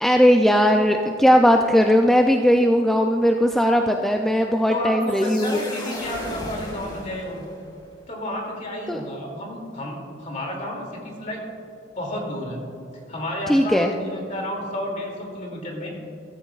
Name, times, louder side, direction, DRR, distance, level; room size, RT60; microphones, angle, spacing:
voice 1, 0.0-5.6 8.9-9.0 13.5-13.9, equal, ahead, 3 dB, 0.4 m, -18 dB
voice 2, 4.7-7.5 8.1-11.4 11.9-12.6 13.1-15.9, left 1 dB, 40° left, -1 dB, 2.6 m, -31 dB
sound 1, 5.0-7.8, left 1 dB, 25° left, 2.3 m, -36 dB
14.5 x 14.0 x 2.4 m, 2.7 s
head